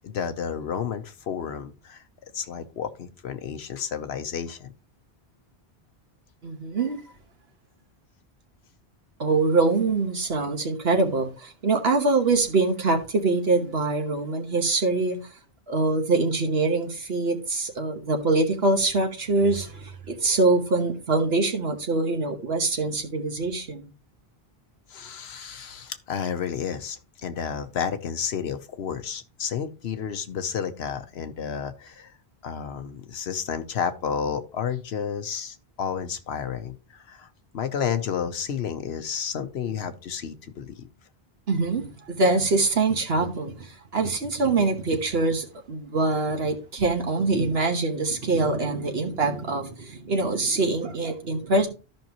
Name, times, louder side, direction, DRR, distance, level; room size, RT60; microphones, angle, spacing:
voice 1, 0.0-2.0 2.3-4.7 24.9-32.1 32.4-37.3 37.5-40.8, left 7 dB, 80° left, 1.0 m, -31 dB
voice 2, 6.4-7.0 9.2-15.2 15.7-23.9 41.5-51.7, right 3 dB, 70° right, 1.5 m, -24 dB
13.5 x 5.6 x 2.9 m
omnidirectional pair, 1.1 m